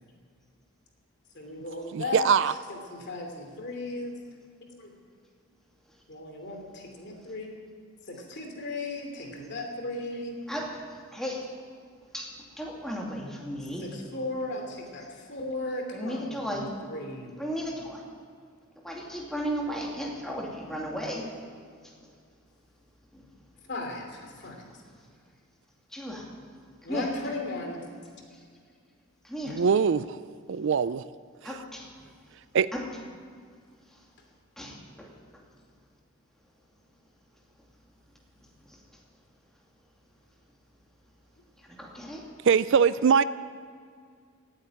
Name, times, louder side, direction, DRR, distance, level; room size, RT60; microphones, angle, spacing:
voice 1, 1.3-4.1 4.8-4.9 6.1-7.6 8.0-10.4 13.8-17.3 23.7-24.7 26.8-27.8 34.6-34.7, left 2 dB, 50° left, 3 dB, 2.9 m, -36 dB
voice 2, 1.9-2.5 29.5-30.1 30.5-31.0 32.5-32.7 42.5-43.2, right 6 dB, 60° right, 16 dB, 0.4 m, -22 dB
voice 3, 12.6-13.9 15.9-16.7 17.4-18.0 18.8-21.2 25.9-26.2 26.9-27.1 29.3-29.6 31.4-31.9 32.7-32.9 34.6-35.1 41.7-42.2, equal, ahead, -2 dB, 2.5 m, -34 dB
17.5 x 8.7 x 9.3 m, 2.1 s
head